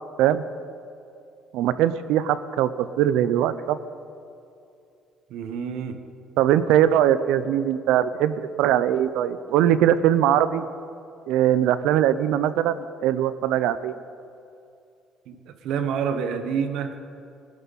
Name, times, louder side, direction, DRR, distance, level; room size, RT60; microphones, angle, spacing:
voice 1, 1.5-2.7 3.0-3.8 6.4-10.7 11.3-13.9, right 11 dB, 85° right, 14 dB, 0.6 m, -21 dB
voice 2, 5.3-6.0 15.3-17.0, right 7 dB, 70° right, 8 dB, 1.2 m, -28 dB
21.0 x 12.0 x 4.2 m, 2.5 s
cardioid pair, 150°, 0 cm